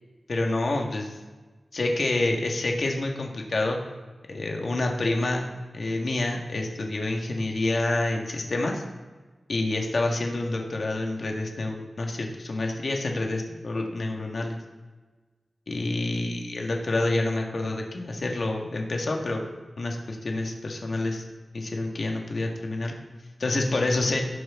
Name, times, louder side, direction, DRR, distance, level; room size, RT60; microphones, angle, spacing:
voice 1, 0.3-1.2 1.7-3.8 4.3-8.8 9.5-14.6 15.7-19.5 19.8-21.2 21.5-23.0 23.4-24.2, left 2 dB, 60° left, 1 dB, 1.6 m, -28 dB
17.5 x 7.9 x 3.6 m, 1.3 s
wide cardioid pair, 90°, 0 cm